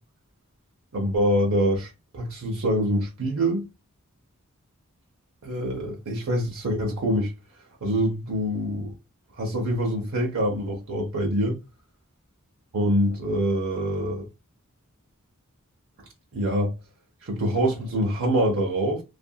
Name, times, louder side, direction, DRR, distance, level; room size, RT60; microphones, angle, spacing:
voice 1, 0.9-3.7 5.4-7.3 7.8-8.9 9.4-11.6 12.7-14.3 16.3-16.7 17.2-19.0, equal, 70° right, 0.7 m, -25 dB
2.7 x 2.6 x 2.2 m
head